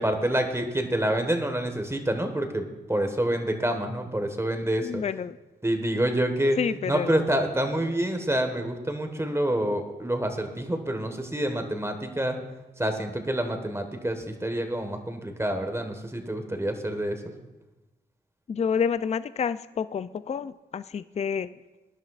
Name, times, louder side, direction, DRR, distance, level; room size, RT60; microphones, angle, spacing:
voice 1, 0.0-5.0 5.6-6.6 6.8-12.4 12.8-17.2, right 1 dB, 15° right, 6 dB, 1.4 m, -27 dB
voice 2, 4.8-5.4 6.6-7.1 18.5-21.5, left 6 dB, 35° left, 14 dB, 0.4 m, -29 dB
19.5 x 10.5 x 2.4 m, 1.1 s
cardioid pair, 55°, 18 cm